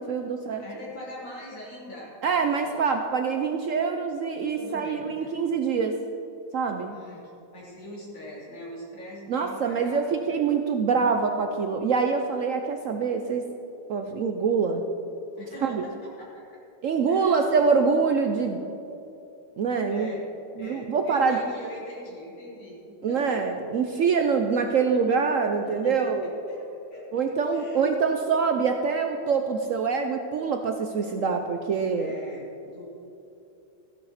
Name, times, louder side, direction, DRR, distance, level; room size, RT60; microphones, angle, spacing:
voice 1, 0.0-0.6 2.2-6.0 6.5-7.0 9.3-13.5 13.9-14.8 15.6-15.8 16.8-18.6 19.6-20.1 20.6-21.4 23.0-26.3 27.1-32.1, right 5 dB, 90° right, 5 dB, 0.7 m, -25 dB
voice 2, 0.6-2.8 4.5-5.3 6.9-7.2 7.5-10.4 15.3-16.6 17.1-17.9 19.9-20.3 20.6-23.4 24.1-24.2 25.6-27.9 31.9-32.8, equal, 70° left, -5 dB, 3.8 m, -42 dB
14.5 x 11.0 x 4.2 m, 2.9 s
omnidirectional pair, 2.1 m